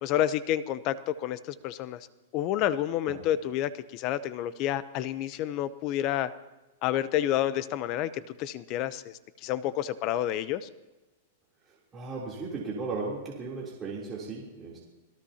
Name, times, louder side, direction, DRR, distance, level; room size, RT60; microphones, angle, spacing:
voice 1, 0.0-2.0 2.3-6.3 6.8-9.1 9.4-10.7, left 12 dB, 35° left, 15 dB, 0.7 m, -29 dB
voice 2, 11.9-14.8, right 4 dB, 20° right, -5 dB, 3.3 m, -36 dB
27.0 x 18.0 x 2.9 m, 1.1 s
supercardioid pair, 150°, 0 cm